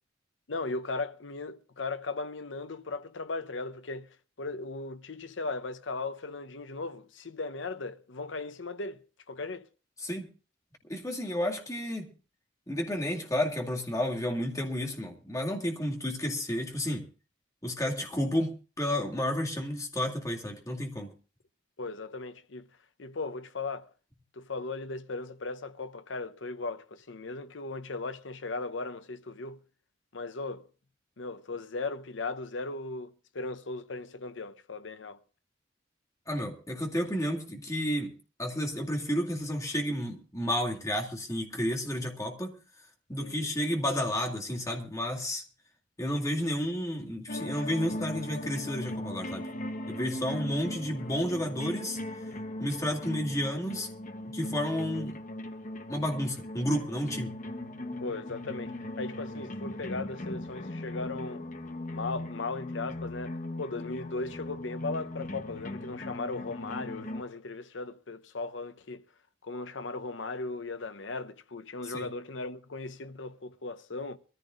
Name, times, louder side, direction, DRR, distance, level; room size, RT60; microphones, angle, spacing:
voice 1, 0.5-9.7 21.8-22.7 23.0-23.9 24.3-29.6 30.1-30.7 31.2-35.2 43.2-43.5 58.0-61.4 61.9-69.0 69.4-74.2, left 3 dB, 70° left, 0.9 m, -37 dB
voice 2, 10.9-12.1 12.7-17.1 17.6-21.1 36.3-42.6 43.1-45.4 46.0-49.5 49.9-52.0 52.6-53.9 54.2-55.2 55.9-57.3 71.9-72.1, equal, 20° left, 2.2 m, -31 dB
sound 1, 47.3-67.2, left 1 dB, 45° left, 1.1 m, -38 dB
23.5 x 14.5 x 2.5 m
head